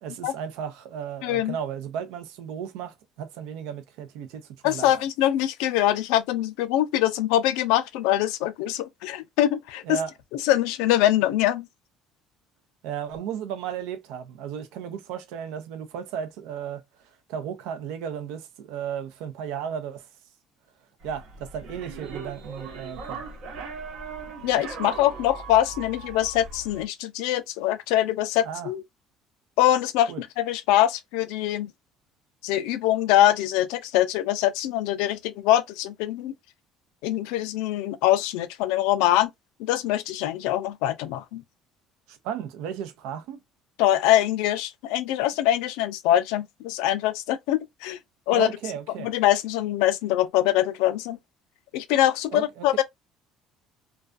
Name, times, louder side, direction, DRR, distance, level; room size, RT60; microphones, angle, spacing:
voice 1, 0.0-5.0 9.8-10.1 12.8-20.1 21.0-23.2 28.4-28.7 30.1-30.2 42.1-43.4 48.3-49.1 52.3-52.7, right 8 dB, 85° right, 0.5 m, -34 dB
voice 2, 1.2-1.6 4.6-9.8 10.4-11.7 24.4-28.8 29.6-31.7 32.4-36.3 37.0-39.3 39.6-41.4 43.8-48.0 48.3-48.5 49.0-51.2 51.7-52.8, left 13 dB, 85° left, 0.3 m, -23 dB
sound 1, 21.0-26.9, right 4 dB, 70° right, 0.9 m, -39 dB
2.3 x 2.2 x 2.4 m
cardioid pair, 115°, 0 cm